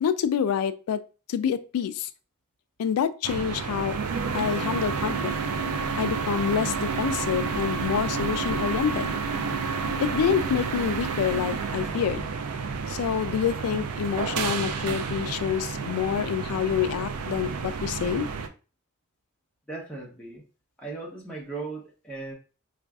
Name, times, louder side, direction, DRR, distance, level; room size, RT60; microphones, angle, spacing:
voice 1, 0.0-1.0 1.3-2.1 2.8-3.9 4.3-5.3 6.0-9.1 10.0-12.3 12.9-18.3, left 8 dB, 80° left, 13 dB, 0.3 m, -27 dB
sound 1, 3.2-18.5, right 5 dB, 90° right, 0.4 m, -30 dB
voice 2, 19.7-20.4 20.8-22.3, right 3 dB, 5° left, -3 dB, 0.7 m, -37 dB
4.6 x 2.5 x 2.3 m, 0.34 s
head